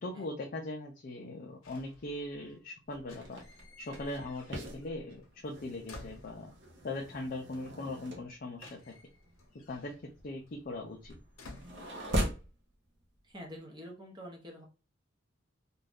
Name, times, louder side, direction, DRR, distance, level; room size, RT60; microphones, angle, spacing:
voice 1, 0.0-3.4 3.8-6.5 6.8-8.9 9.7-10.0 10.2-11.2, left 2 dB, 45° left, 1 dB, 0.4 m, -40 dB
sound 1, 1.6-2.6 3.0-5.0 5.2-6.8 7.8-7.9 8.1-12.6 12.9-13.3, left 2 dB, 75° left, 0.8 m, -55 dB
sound 2, 2.9-12.5, equal, 55° right, 0.7 m, -40 dB
voice 2, 13.2-14.6, equal, 20° right, 0 dB, 0.7 m, -47 dB
2.5 x 2.3 x 3.4 m, 0.33 s
head